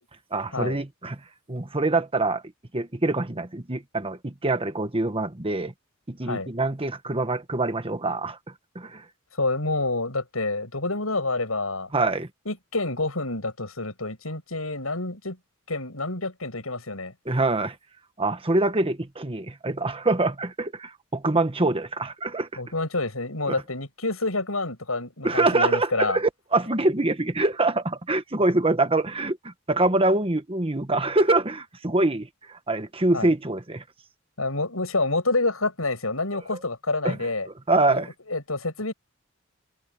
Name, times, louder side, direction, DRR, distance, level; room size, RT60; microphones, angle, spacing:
voice 1, 0.3-1.2 1.5-2.4 2.7-5.7 6.1-8.4 8.7-9.0 11.9-12.3 17.2-17.7 18.2-22.5 25.2-32.3 32.7-33.8 37.0-37.2 37.7-38.1, right 2 dB, 25° right, 1.4 m, -24 dB
voice 2, 9.4-11.9 12.4-15.4 15.7-17.1 22.6-26.2 33.1-33.3 34.4-37.5 37.9-38.9, left 2 dB, 80° left, 7.9 m, -28 dB
head